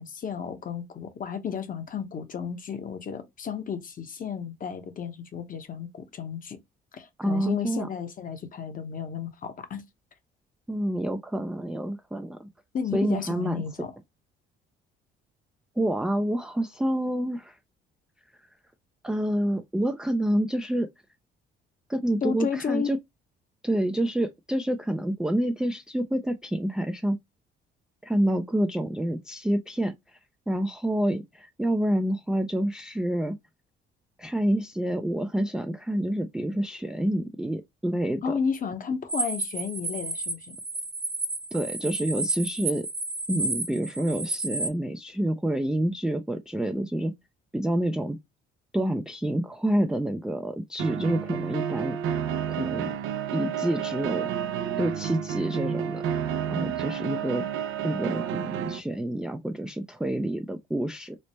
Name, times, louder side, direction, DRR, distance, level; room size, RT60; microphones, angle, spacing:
voice 1, 0.0-6.6 6.9-9.9 12.7-13.9 22.2-22.9 38.2-40.6, left 7 dB, 40° left, 0.8 m, -32 dB
voice 2, 7.2-7.9 10.7-12.5 12.9-13.6 15.8-17.6 19.0-20.9 21.9-23.0 23.6-27.2 28.0-30.2 30.5-33.4 34.2-38.3 41.5-42.9 43.3-47.1 47.5-48.2 48.7-52.0 52.5-52.9 53.3-54.3 54.8-56.0 56.5-57.5 57.8-61.2, right 1 dB, 5° right, 0.3 m, -28 dB
sound 1, 39.1-44.7, right 2 dB, 30° right, 0.7 m, -31 dB
sound 2, 50.8-58.8, right 9 dB, 80° right, 0.5 m, -30 dB
3.2 x 2.0 x 4.1 m
cardioid pair, 95°, 21 cm